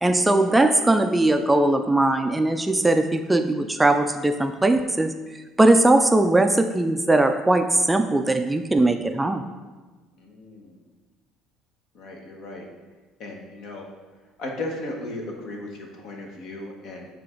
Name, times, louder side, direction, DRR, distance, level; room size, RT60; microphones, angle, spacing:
voice 1, 0.0-5.1 5.6-9.4, right 2 dB, 10° right, 7 dB, 0.3 m, -20 dB
voice 2, 10.2-10.8 11.9-12.6 13.2-13.8 14.4-17.1, left 2 dB, 65° left, 1 dB, 1.3 m, -36 dB
8.7 x 3.4 x 3.7 m, 1.3 s
cardioid pair, 110°, 0 cm